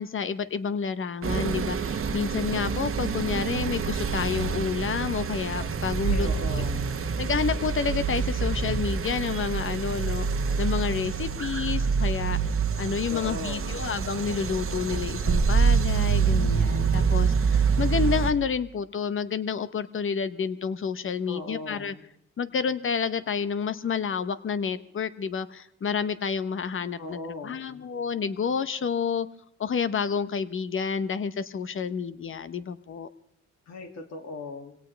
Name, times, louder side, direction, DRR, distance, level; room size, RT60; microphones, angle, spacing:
voice 1, 0.0-6.6 7.2-12.4 12.8-21.9 22.4-27.2 27.4-29.3 29.6-33.1, left 6 dB, 45° left, 13 dB, 1.0 m, -29 dB
sound 1, 1.2-18.3, right 5 dB, 45° right, 1.3 m, -26 dB
voice 2, 6.1-7.0 13.1-13.9 21.3-22.1 27.0-27.9 33.7-34.7, left 2 dB, 60° left, 2 dB, 2.5 m, -38 dB
24.0 x 17.5 x 3.4 m, 0.70 s
cardioid pair, 90°, 30 cm